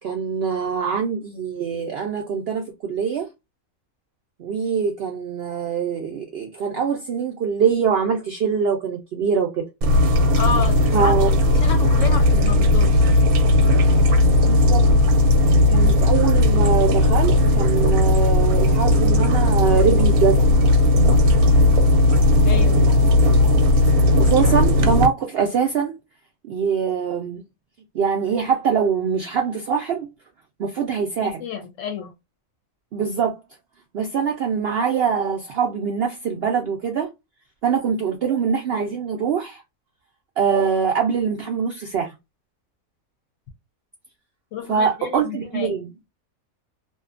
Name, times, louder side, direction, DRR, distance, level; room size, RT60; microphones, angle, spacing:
voice 1, 0.0-3.3 4.4-9.7 10.9-11.4 14.4-14.8 15.7-20.4 22.7-23.1 24.2-25.9 26.5-27.4 27.9-30.1 30.6-31.4 32.9-33.4 33.9-37.1 37.6-39.6 40.4-42.1 44.7-45.9, right 6 dB, 70° right, 0.5 m, -23 dB
sound 1, 9.8-25.1, left 2 dB, 85° right, 1.1 m, -16 dB
voice 2, 10.4-11.1 11.5-13.1 22.4-22.9 31.2-32.1 44.5-45.7, left 6 dB, 70° left, 0.9 m, -30 dB
2.7 x 2.3 x 2.4 m
omnidirectional pair, 1.5 m